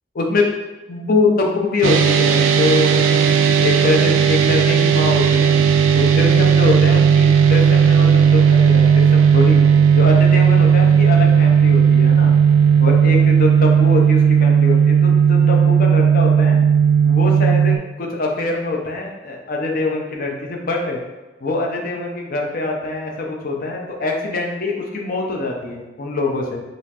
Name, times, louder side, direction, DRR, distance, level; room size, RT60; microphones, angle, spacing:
voice 1, 0.9-3.3 3.6-5.6 5.9-9.6 10.0-12.3 12.8-16.6 17.0-21.0 21.4-26.6, left 3 dB, 50° left, 0 dB, 0.6 m, -23 dB
sound 1, 1.8-17.8, right 7 dB, 85° right, 0.3 m, -14 dB
5.3 x 2.0 x 2.9 m, 1.1 s
head